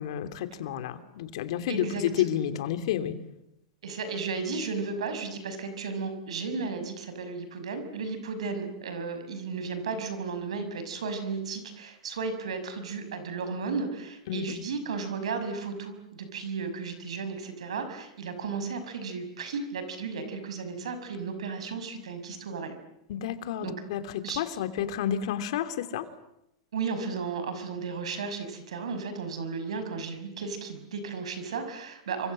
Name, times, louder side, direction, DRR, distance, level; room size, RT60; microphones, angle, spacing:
voice 1, 0.0-3.1 14.3-14.5 23.1-26.0, left 10 dB, 70° left, 9 dB, 2.9 m, -30 dB
voice 2, 1.7-2.0 2.3-2.4 3.8-22.8 23.6-23.7 24.2-24.4 26.7-32.3, right 4 dB, 85° right, 9 dB, 5.9 m, -34 dB
28.5 x 25.5 x 7.7 m, 0.84 s
hypercardioid pair, 120°, 3 cm